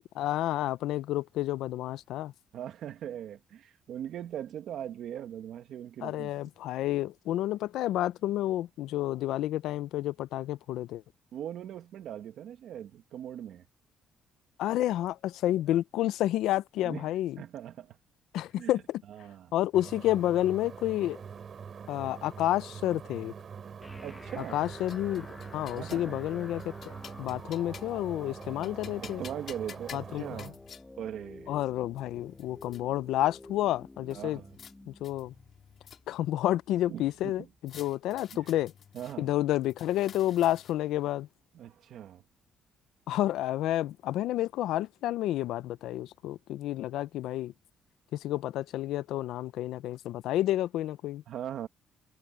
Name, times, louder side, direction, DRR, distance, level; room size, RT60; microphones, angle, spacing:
voice 1, 0.2-2.3 6.0-11.0 14.6-17.4 18.3-19.0 19.5-21.2 21.9-23.3 24.4-25.3 25.5-29.2 29.9-30.5 31.5-34.4 34.9-35.3 36.1-38.7 39.2-41.3 43.1-47.5 48.1-51.2, left 14 dB, 90° left, 0.5 m, -30 dB
voice 2, 2.5-6.3 11.3-13.6 16.8-18.0 18.6-18.7 19.1-19.5 24.0-24.6 25.8-26.3 29.0-30.6 31.0-31.6 34.1-34.6 36.9-37.3 38.3-38.4 38.9-39.3 41.5-42.2 51.3-51.7, right 10 dB, 65° right, 1.9 m, -40 dB
sound 1, 19.7-30.5, right 6 dB, 40° right, 3.1 m, -44 dB
sound 2, 23.8-37.8, left 2 dB, 15° left, 0.9 m, -50 dB
sound 3, 24.4-26.1 26.6-28.1 28.4-30.8 31.6-31.7 32.0-32.8 34.1-34.7 35.0-36.3 37.7-39.2 39.6-41.0, left 8 dB, 50° left, 4.7 m, -51 dB
cardioid pair, 145°, 0 cm